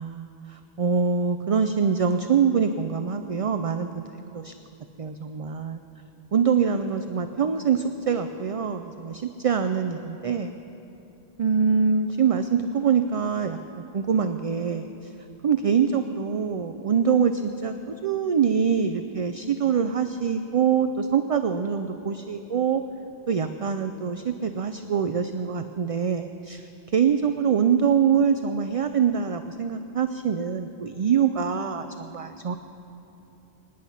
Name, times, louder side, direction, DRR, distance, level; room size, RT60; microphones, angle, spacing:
voice 1, 0.0-4.5 5.0-5.8 6.3-10.5 11.4-14.9 15.4-17.7 18.0-22.8 23.3-32.6, right 6 dB, 45° right, 8 dB, 0.5 m, -24 dB
24.5 x 10.0 x 5.7 m, 3.0 s
omnidirectional pair, 1.0 m